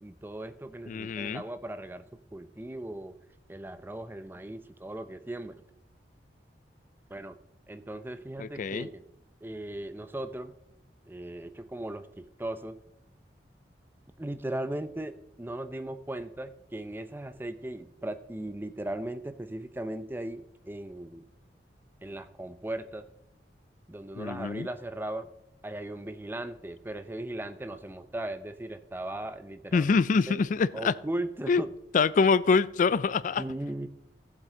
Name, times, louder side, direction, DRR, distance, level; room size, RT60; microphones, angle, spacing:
voice 1, 0.0-2.0 2.3-3.2 3.5-5.6 7.1-7.4 7.7-9.0 9.4-10.5 11.1-12.8 14.2-21.2 22.0-23.1 23.9-25.3 25.6-29.9 30.3-30.4 30.7-31.7 33.4-33.9, right 1 dB, 10° right, 11 dB, 0.5 m, -37 dB
voice 2, 0.9-1.4 8.4-8.9 24.2-24.7 29.7-30.9 31.5-31.6 31.9-33.4, left 5 dB, 45° left, 17 dB, 0.3 m, -25 dB
14.5 x 7.5 x 3.7 m, 0.84 s
head